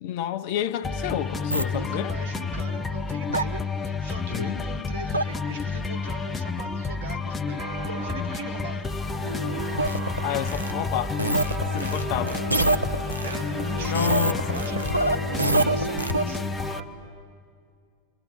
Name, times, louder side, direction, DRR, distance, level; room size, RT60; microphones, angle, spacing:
voice 1, 0.0-2.2 4.3-5.0 10.2-11.2 11.7-12.4 13.8-14.7, left 11 dB, 50° left, 0.7 m, -30 dB
sound 1, 0.8-16.8, left 4 dB, 15° left, 0.8 m, -30 dB
sound 2, 1.5-1.6 3.3-3.4 5.1-5.2 9.7-10.7 11.2-13.4 13.9-16.2, right 2 dB, 85° right, 0.5 m, -25 dB
voice 2, 1.7-8.9 11.8-12.1 13.2-16.6, right 4 dB, 55° right, 1.7 m, -40 dB
sound 3, 7.6-16.9, right 2 dB, 35° right, 3.9 m, -36 dB
29.5 x 22.5 x 5.8 m
figure-of-eight pair, 90°, 0 cm